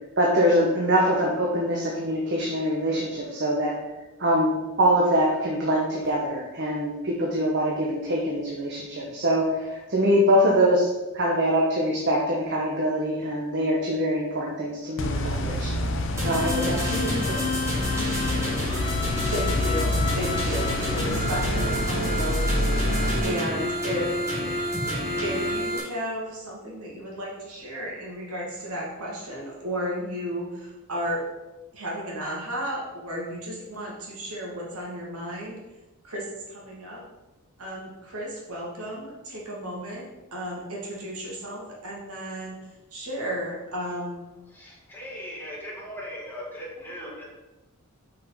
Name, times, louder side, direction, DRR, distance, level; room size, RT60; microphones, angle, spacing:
voice 1, 0.2-3.7 4.2-10.9 11.1-15.8 16.2-17.4, equal, 50° right, -2 dB, 1.3 m, -24 dB
sound 1, 15.0-23.2, left 1 dB, 60° left, 0.7 m, -27 dB
sound 2, 16.2-25.8, left 1 dB, 15° right, 2.8 m, -29 dB
voice 2, 19.3-22.7 23.2-24.1 24.8-31.2 31.7-35.6 36.0-37.0 37.6-42.6 42.9-44.2, equal, 85° right, -4 dB, 2.6 m, -33 dB
voice 3, 44.5-47.2, equal, 10° left, -5 dB, 2.2 m, -38 dB
6.2 x 5.8 x 5.7 m, 1.1 s
head